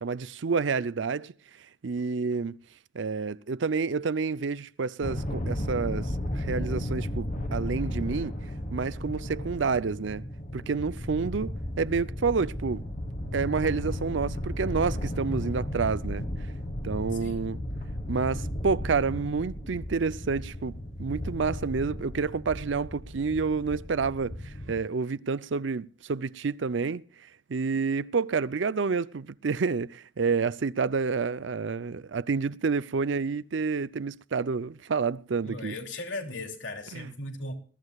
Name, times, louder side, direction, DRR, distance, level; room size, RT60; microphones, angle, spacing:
voice 1, 0.0-1.3 1.8-2.6 2.9-8.3 8.7-10.2 10.5-12.8 13.3-16.3 16.8-17.6 18.1-27.0 27.5-35.8 36.9-37.1, right 5 dB, 75° right, 0.5 m, -29 dB
sound 1, 5.0-24.8, left 1 dB, 45° left, 1.4 m, -34 dB
voice 2, 35.5-37.5, left 2 dB, 80° left, 2.9 m, -37 dB
21.0 x 14.5 x 2.4 m
head